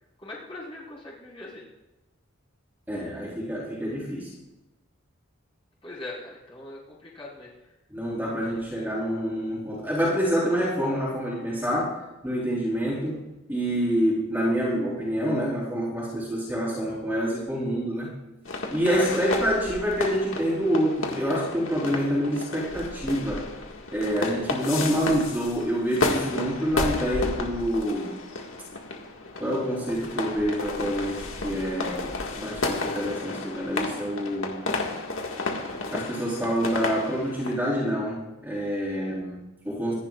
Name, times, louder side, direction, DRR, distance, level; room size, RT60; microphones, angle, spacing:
voice 1, 0.2-1.6 5.8-7.5 18.8-19.2, left 2 dB, 25° left, -6 dB, 4.6 m, -39 dB
voice 2, 2.9-4.3 7.9-18.1 18.7-23.5 23.9-28.1 29.4-34.6 35.9-39.9, equal, 10° right, -6 dB, 3.4 m, -27 dB
sound 1, 18.4-37.5, left 3 dB, 75° left, 1.8 m, -32 dB
25.5 x 10.5 x 2.4 m, 1.0 s
head